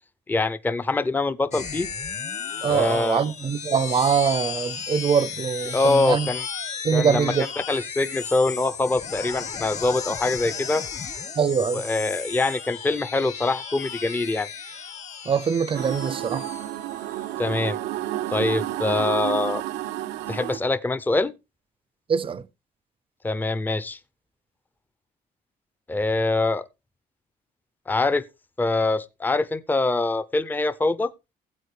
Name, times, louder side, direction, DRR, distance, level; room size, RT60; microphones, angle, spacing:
voice 1, 0.3-1.9 2.7-3.2 5.7-6.5 6.9-7.3 7.7-10.8 11.6-14.5 17.4-17.8 18.3-19.6 20.3-21.3 23.2-24.0 25.9-26.6 27.9-28.2 28.6-31.1, left 2 dB, 10° left, 0.5 m, -24 dB
sound 1, 1.5-17.3, left 6 dB, 45° left, 1.3 m, -34 dB
voice 2, 2.6-6.3 6.8-7.5 11.4-11.8 15.3-16.4 22.1-22.4, right 6 dB, 30° right, 0.6 m, -23 dB
sound 2, 15.7-20.6, right 14 dB, 85° right, 0.7 m, -30 dB
17.0 x 7.8 x 3.3 m
cardioid pair, 110°, 17 cm